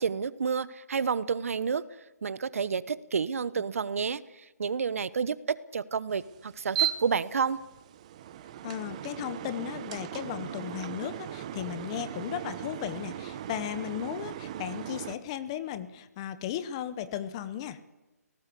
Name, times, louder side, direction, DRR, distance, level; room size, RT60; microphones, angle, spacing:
voice 1, 0.0-1.8 2.2-4.2 4.6-7.6, right 6 dB, 55° right, 17 dB, 1.0 m, -30 dB
sound 1, 6.1-15.2, right 12 dB, 25° right, 0.8 m, -37 dB
voice 2, 8.6-17.8, left 10 dB, 20° left, 14 dB, 0.7 m, -36 dB
26.0 x 18.0 x 8.4 m, 1.1 s
hypercardioid pair, 165°, 9 cm